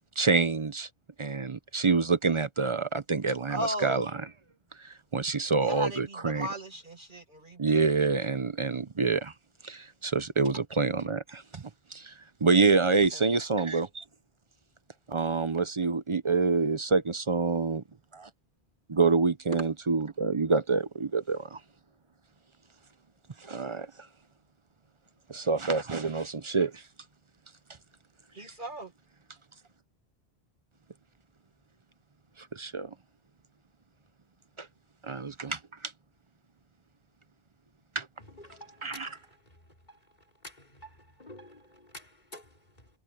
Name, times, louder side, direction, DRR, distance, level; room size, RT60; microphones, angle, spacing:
voice 1, 0.2-0.9 1.2-4.1 4.8-6.5 7.6-9.3 9.6-11.6 11.9-12.1 12.4-14.0 15.1-17.8 18.9-21.6 23.4-23.9 25.3-26.8 32.5-32.9 34.6-34.7 35.0-35.6 37.9-38.1 38.8-39.1, right 4 dB, 35° right, 0.7 m, -27 dB
voice 2, 3.5-4.1 5.6-8.1 13.1-13.3 28.3-28.9, right 1 dB, 50° right, 1.9 m, -37 dB
voice 3, 38.2-40.0 40.4-42.9, left 1 dB, 45° left, 4.9 m, -50 dB
omnidirectional pair, 1.1 m